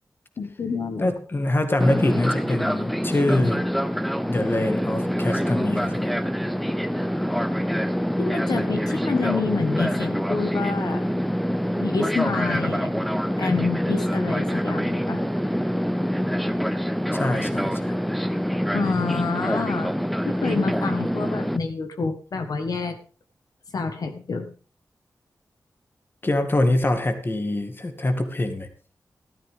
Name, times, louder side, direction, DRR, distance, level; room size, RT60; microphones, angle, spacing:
voice 1, 0.4-1.1 8.2-11.0 11.8-15.2 18.7-19.9 20.2-23.0 23.7-24.5, left 4 dB, 70° left, 6 dB, 1.6 m, -28 dB
voice 2, 1.0-3.6 4.3-6.2 17.1-17.9 26.2-28.7, left 1 dB, 35° left, 7 dB, 2.0 m, -24 dB
Fixed-wing aircraft airplane, 1.8-21.6, equal, ahead, 0.8 m, -25 dB
14.5 x 12.5 x 3.7 m, 0.38 s
wide cardioid pair, 100°, 7 cm